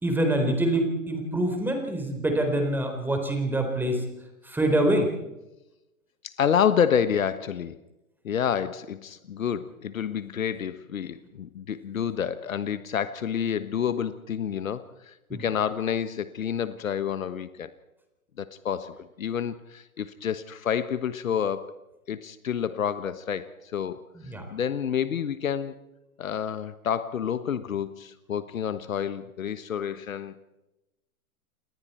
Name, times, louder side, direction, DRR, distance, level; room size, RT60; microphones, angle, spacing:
voice 1, 0.0-4.0 4.4-5.1 15.3-15.4 24.1-24.4, right 1 dB, 5° right, 4 dB, 4.1 m, -25 dB
voice 2, 6.2-7.8 8.2-17.7 18.4-21.8 22.1-24.0 24.5-25.8 26.2-30.3, left 8 dB, 65° left, 13 dB, 1.3 m, -29 dB
29.0 x 20.0 x 4.5 m, 0.97 s
figure-of-eight pair, 120°, 43 cm